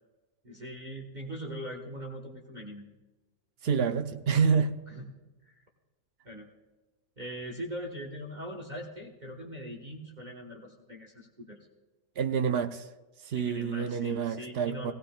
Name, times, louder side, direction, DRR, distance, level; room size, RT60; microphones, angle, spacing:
voice 1, 0.4-2.9 4.9-5.1 5.4-5.6 6.2-6.5 7.2-11.6 13.3-14.9, equal, 35° right, -1 dB, 1.2 m, -41 dB
voice 2, 3.6-4.8 12.2-12.9 13.2-14.9, right 6 dB, 60° right, 8 dB, 0.7 m, -28 dB
17.5 x 16.0 x 2.3 m, 1.2 s
omnidirectional pair, 1.5 m